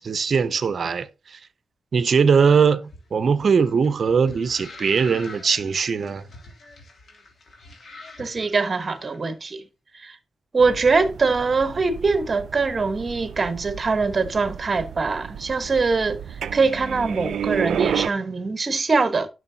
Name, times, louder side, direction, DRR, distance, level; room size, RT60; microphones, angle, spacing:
voice 1, 0.0-1.4 1.9-2.8 3.1-6.2, right 6 dB, 65° right, 0.7 m, -20 dB
sound 1, 2.8-9.2, left 2 dB, 60° left, 3.1 m, -45 dB
voice 2, 8.2-9.6 9.9-10.2 10.5-19.3, right 4 dB, 45° right, 1.2 m, -23 dB
sound 2, 10.6-18.1, right 8 dB, 90° right, 0.4 m, -31 dB
11.0 x 6.4 x 2.8 m
cardioid pair, 70°, 0 cm